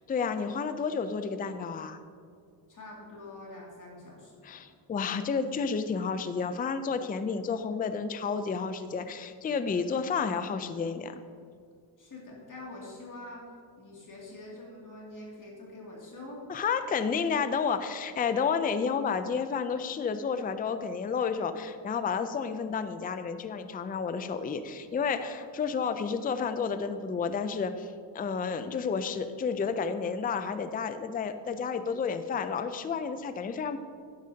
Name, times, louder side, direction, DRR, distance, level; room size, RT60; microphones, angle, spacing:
voice 1, 0.1-2.0 4.4-11.2 16.5-33.8, left 5 dB, 20° left, 10 dB, 0.4 m, -31 dB
voice 2, 2.7-4.6 12.0-13.4 13.7-16.4 25.6-25.7, left 2 dB, 40° left, -3 dB, 2.5 m, -45 dB
11.5 x 10.5 x 2.8 m, 2.3 s
cardioid pair, 110°, 46 cm